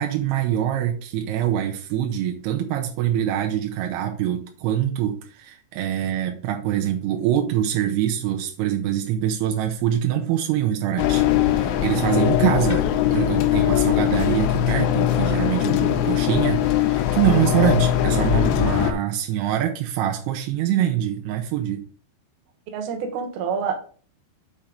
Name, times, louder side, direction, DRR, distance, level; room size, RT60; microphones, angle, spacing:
voice 1, 0.0-21.8, right 11 dB, 85° right, 3 dB, 2.3 m, -24 dB
sound 1, 11.0-18.9, left 11 dB, 80° left, 2.7 m, -21 dB
voice 2, 22.7-23.8, right 6 dB, 70° right, 4 dB, 2.4 m, -27 dB
7.4 x 4.3 x 5.1 m, 0.44 s
omnidirectional pair, 5.6 m